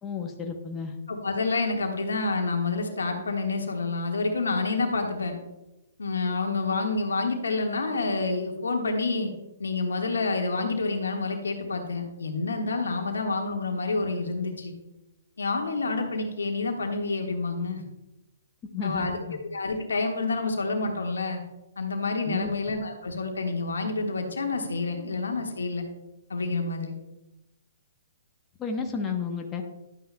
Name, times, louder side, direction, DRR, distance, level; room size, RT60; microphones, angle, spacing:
voice 1, 0.0-0.9 18.7-19.4 22.2-22.5 28.6-29.6, left 6 dB, 20° left, 3 dB, 0.9 m, -32 dB
voice 2, 1.1-5.4 6.0-9.3 9.6-14.7 15.4-17.8 18.8-19.2 19.5-21.4 21.8-25.8 26.3-26.9, left 3 dB, 80° left, 3 dB, 1.5 m, -28 dB
11.5 x 9.0 x 2.2 m, 0.94 s
figure-of-eight pair, 125°, 0 cm